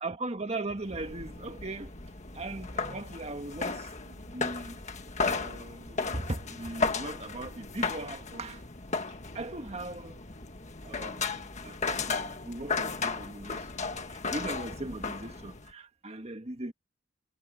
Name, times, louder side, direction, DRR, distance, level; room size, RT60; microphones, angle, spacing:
voice 1, 0.0-1.9 2.3-4.8 5.2-8.6 9.3-10.2 10.8-16.7, right 2 dB, 30° right, 1.6 m, -39 dB
sound 1, 0.8-15.7, left 4 dB, 35° left, 1.6 m, -35 dB
head